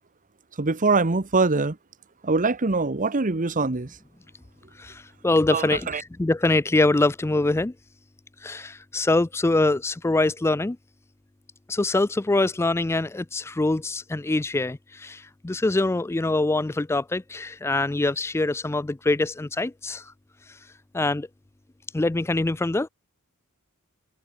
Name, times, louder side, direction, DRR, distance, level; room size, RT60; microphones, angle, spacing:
voice 1, 0.6-1.8 2.2-3.9 5.5-6.0, right 3 dB, 35° right, 1.0 m, -23 dB
voice 2, 4.8-7.7 8.4-10.8 11.7-20.0 20.9-21.3 21.9-22.9, left 2 dB, 10° left, 0.4 m, -24 dB
head